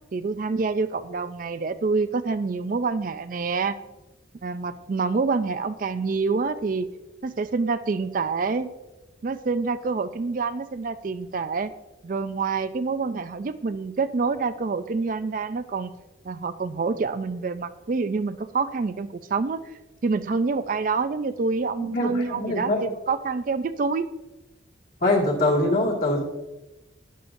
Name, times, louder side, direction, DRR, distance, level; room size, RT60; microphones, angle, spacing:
voice 1, 0.1-3.8 4.4-6.9 7.2-8.7 9.2-11.7 12.0-15.9 16.2-19.7 20.0-24.1, right 4 dB, 45° right, 11 dB, 0.4 m, -27 dB
voice 2, 21.8-22.9 25.0-26.2, left 1 dB, 50° left, -3 dB, 2.1 m, -23 dB
12.0 x 10.0 x 2.6 m, 1.0 s
head